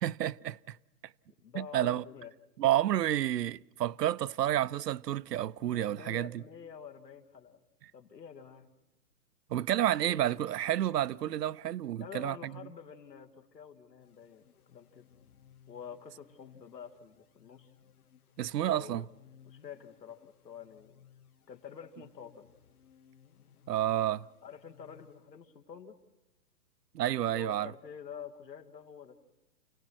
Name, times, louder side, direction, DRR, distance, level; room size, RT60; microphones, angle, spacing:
voice 1, 0.0-0.8 1.5-2.0 2.6-6.4 9.5-12.5 18.4-19.0 23.7-24.3 26.9-27.7, right 12 dB, 75° right, 0.6 m, -30 dB
voice 2, 1.4-2.3 5.6-7.6 7.9-8.7 10.0-10.3 12.0-15.1 15.7-17.7 18.5-19.1 19.4-21.0 21.5-22.5 24.4-26.0 27.3-29.2, left 7 dB, 85° left, 2.1 m, -48 dB
sound 1, 14.0-25.8, left 9 dB, 65° left, 1.7 m, -62 dB
29.5 x 17.0 x 6.2 m
hypercardioid pair, 145°, 49 cm